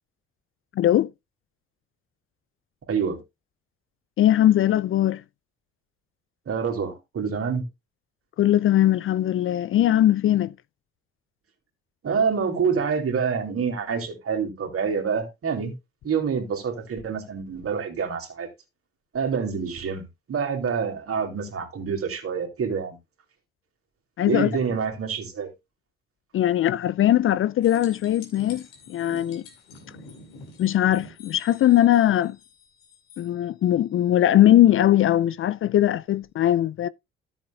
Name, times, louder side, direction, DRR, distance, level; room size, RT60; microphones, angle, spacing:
voice 1, 0.8-1.1 4.2-5.2 8.4-10.5 24.2-24.5 26.3-29.4 30.6-32.4 33.2-36.9, left 12 dB, 45° left, 0.5 m, -20 dB
voice 2, 2.9-3.2 6.5-7.6 12.0-15.7 16.0-18.5 19.1-23.0 24.3-25.5, right 6 dB, 50° right, 3.0 m, -27 dB
sound 1, 27.6-33.3 36.2-36.3, left 3 dB, 90° left, 2.4 m, -47 dB
13.5 x 7.3 x 2.4 m
hypercardioid pair, 55°, 29 cm